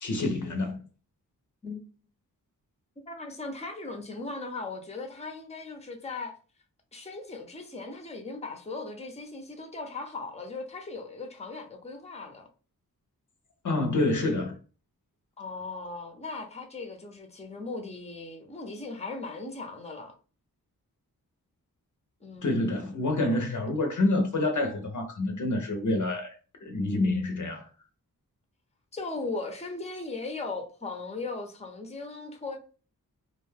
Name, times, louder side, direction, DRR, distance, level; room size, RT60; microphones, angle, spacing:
voice 1, 0.0-0.8 13.6-14.6 22.4-26.3 26.6-27.7, left 2 dB, 55° left, 0.7 m, -27 dB
voice 2, 3.1-6.4 6.9-12.5 15.4-20.1 22.2-22.7 28.9-32.6, left 3 dB, 20° left, 0.7 m, -38 dB
2.5 x 2.3 x 3.3 m
cardioid pair, 65°, 36 cm